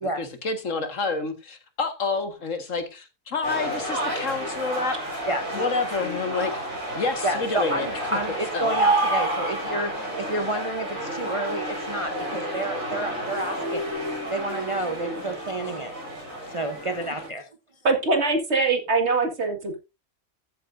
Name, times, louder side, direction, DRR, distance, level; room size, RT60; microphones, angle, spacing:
voice 1, 0.1-5.0 5.5-6.6 6.9-7.9 8.5-8.8, left 4 dB, 70° left, 1.9 m, -28 dB
sound 1, 3.4-17.3, right 1 dB, 85° right, 6.0 m, -30 dB
voice 2, 5.3-5.6 7.2-13.9 14.3-15.9 16.5-17.5, right 2 dB, 30° right, 0.8 m, -30 dB
voice 3, 17.8-19.8, right 3 dB, 55° right, 2.2 m, -22 dB
13.5 x 8.6 x 2.6 m
omnidirectional pair, 1.4 m